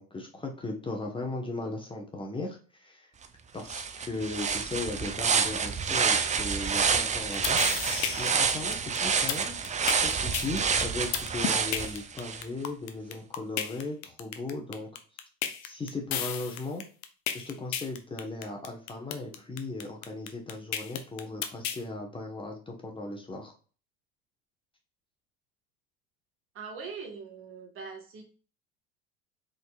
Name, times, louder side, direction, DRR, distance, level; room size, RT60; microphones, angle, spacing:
voice 1, 0.0-3.1 3.5-7.6 8.2-9.6 9.9-14.9 15.6-16.8 17.3-23.5, left 2 dB, 15° left, 1 dB, 1.2 m, -37 dB
sound 1, 3.2-3.3 3.6-12.4, right 6 dB, 25° right, 0.6 m, -28 dB
sound 2, 7.1-21.8, left 10 dB, 60° left, 0.8 m, -33 dB
voice 2, 26.5-28.2, right 5 dB, 40° right, 3 dB, 1.6 m, -41 dB
4.3 x 3.8 x 2.4 m, 0.38 s
hypercardioid pair, 85°, 31 cm